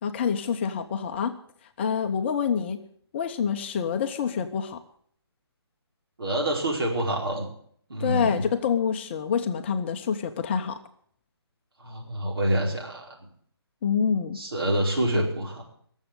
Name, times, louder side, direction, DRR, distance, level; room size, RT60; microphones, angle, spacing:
voice 1, 0.0-1.3 1.8-2.8 3.1-4.8 8.0-10.8 13.8-14.4, left 7 dB, 25° left, 7 dB, 0.7 m, -27 dB
voice 2, 6.2-7.5 7.9-8.4 11.8-13.2 14.3-15.6, right 1 dB, 60° right, 0 dB, 4.8 m, -27 dB
19.0 x 7.3 x 8.1 m, 0.63 s
figure-of-eight pair, 145°, 14 cm